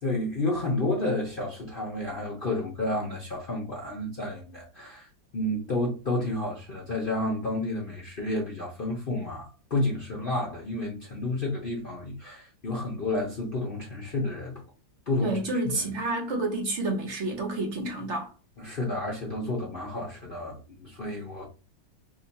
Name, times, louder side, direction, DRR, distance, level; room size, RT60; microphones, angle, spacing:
voice 1, 0.0-5.1 5.3-14.6 15.1-16.0 18.6-21.5, left 2 dB, 60° left, 0.6 m, -31 dB
voice 2, 15.2-18.3, right 2 dB, 55° right, 0.8 m, -29 dB
2.8 x 2.4 x 4.1 m
omnidirectional pair, 2.0 m